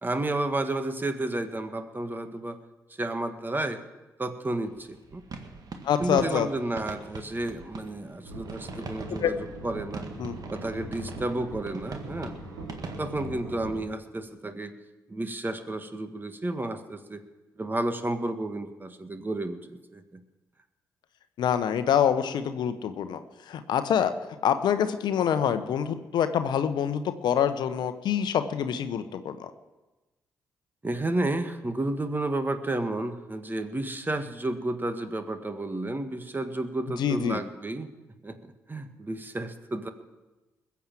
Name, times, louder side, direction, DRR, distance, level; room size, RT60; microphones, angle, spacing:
voice 1, 0.0-2.6 3.0-3.8 4.2-5.2 6.0-10.1 10.5-12.4 13.0-14.7 15.1-17.2 17.6-20.2 30.8-37.9 38.2-39.9, right 2 dB, 25° right, 9 dB, 1.7 m, -31 dB
sound 1, 4.6-13.3, right 4 dB, 55° right, 1.8 m, -43 dB
voice 2, 5.8-6.5 9.2-9.3 10.2-10.4 21.4-23.2 23.5-24.1 24.4-29.5 37.0-37.4, left 8 dB, 65° left, 10 dB, 0.9 m, -26 dB
sound 2, 8.2-13.8, right 1 dB, 85° right, 2.8 m, -41 dB
21.0 x 7.3 x 7.6 m, 1.1 s
hypercardioid pair, 40°, 8 cm